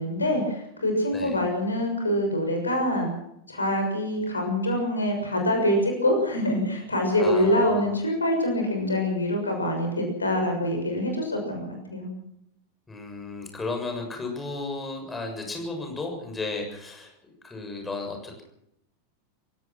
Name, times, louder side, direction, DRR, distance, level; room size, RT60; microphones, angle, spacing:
voice 1, 0.0-3.1 3.5-12.1, left 1 dB, 75° left, 4 dB, 6.5 m, -25 dB
voice 2, 7.2-7.9 12.9-17.1 17.4-18.4, left 3 dB, 10° left, 2 dB, 7.0 m, -34 dB
27.0 x 17.0 x 6.1 m, 0.78 s
figure-of-eight pair, 90°, 0 cm